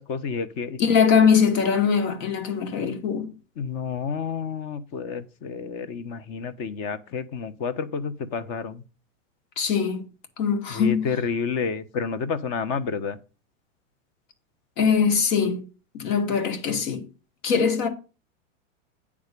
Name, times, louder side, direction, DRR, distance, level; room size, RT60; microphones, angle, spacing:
voice 1, 0.0-0.8 3.6-8.8 10.7-13.2, left 5 dB, 40° left, 1.0 m, -30 dB
voice 2, 0.8-3.4 9.6-10.1 10.4-11.1 14.8-15.6 15.9-17.1 17.4-17.9, left 6 dB, 70° left, 1.9 m, -22 dB
9.6 x 3.6 x 6.7 m
supercardioid pair, 135°, 40 cm